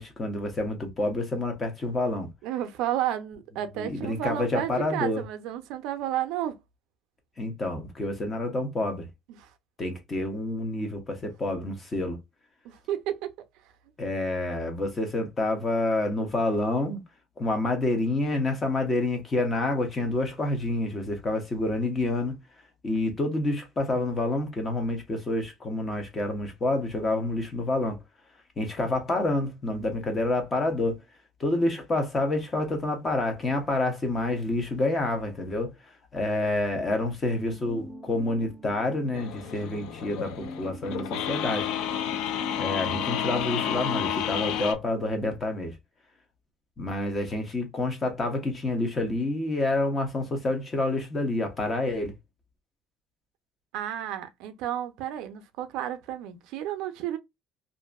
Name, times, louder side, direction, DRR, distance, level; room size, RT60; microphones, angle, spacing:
voice 1, 0.0-2.3 3.8-5.2 7.4-9.1 9.8-12.2 14.0-17.0 17.4-22.4 22.8-28.0 28.6-31.0 31.4-41.7 42.6-45.8 46.8-52.1, left 2 dB, 20° left, 0.8 m, -28 dB
voice 2, 2.4-6.6 9.3-9.5 12.6-13.3 53.7-57.2, right 11 dB, 75° right, 0.5 m, -32 dB
sound 1, 37.2-44.1, equal, 20° right, 0.6 m, -43 dB
sound 2, 39.1-44.7, left 10 dB, 70° left, 0.4 m, -31 dB
2.6 x 2.5 x 2.3 m
cardioid pair, 175°, 0 cm